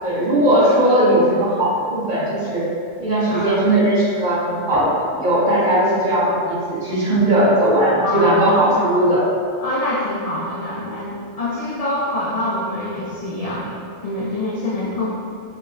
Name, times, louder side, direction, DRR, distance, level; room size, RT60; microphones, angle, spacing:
voice 1, 0.0-2.6 3.0-9.3, right 1 dB, 45° right, -10 dB, 1.2 m, -18 dB
voice 2, 3.3-3.6 8.0-9.0 9.6-15.1, left 1 dB, 75° left, -6 dB, 0.3 m, -25 dB
5.7 x 2.1 x 2.5 m, 2.4 s
omnidirectional pair, 1.2 m